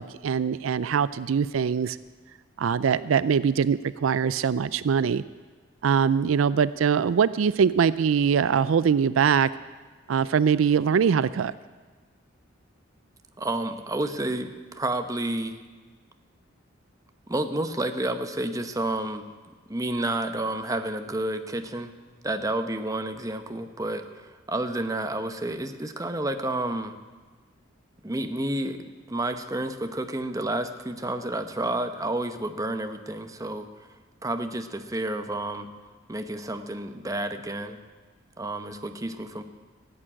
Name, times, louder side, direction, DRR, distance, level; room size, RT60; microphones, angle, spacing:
voice 1, 0.0-2.0 2.6-5.2 5.8-9.5 10.1-11.5, right 7 dB, 80° right, 17 dB, 0.4 m, -22 dB
voice 2, 13.4-15.6 17.3-19.2 19.7-21.9 22.2-26.9 28.0-28.8 29.1-33.9 34.2-35.7 36.1-37.8 38.4-39.4, right 1 dB, 15° right, 7 dB, 0.9 m, -30 dB
16.0 x 8.7 x 8.8 m, 1.4 s
head